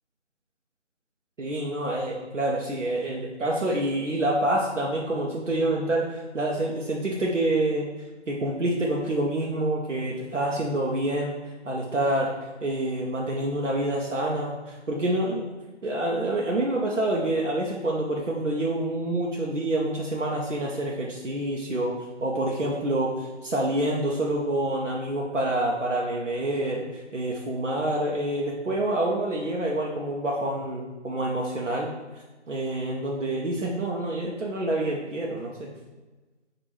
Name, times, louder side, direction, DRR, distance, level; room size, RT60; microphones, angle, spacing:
voice 1, 1.4-7.9 8.3-11.3 11.6-12.3 12.6-15.5 15.8-21.9 22.2-31.9 32.5-35.7, right 1 dB, 85° right, -3 dB, 0.8 m, -27 dB
5.6 x 2.5 x 3.1 m, 1.2 s
figure-of-eight pair, 160°, 36 cm